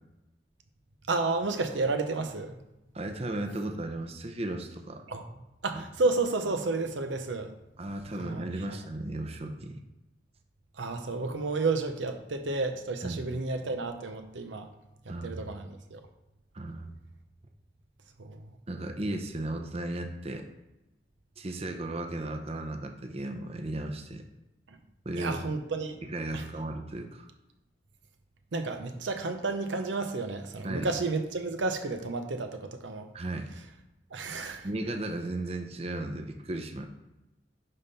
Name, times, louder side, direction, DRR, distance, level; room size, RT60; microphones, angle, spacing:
voice 1, 1.1-2.6 5.1-5.3 5.6-7.5 8.2-8.8 10.7-14.7 15.0-16.0 18.2-18.5 24.7-24.8 25.1-26.0 26.3-26.4 28.5-33.1 34.1-34.7, right 3 dB, 90° right, 6 dB, 0.8 m, -31 dB
voice 2, 2.9-5.0 5.7-5.8 7.8-9.8 13.0-13.2 15.1-15.4 16.5-16.9 18.7-20.5 21.4-24.2 25.0-25.4 26.1-27.3 30.6-30.9 33.1-33.5 34.6-36.9, right 1 dB, 35° right, 5 dB, 0.7 m, -35 dB
11.0 x 3.7 x 4.1 m, 0.96 s
head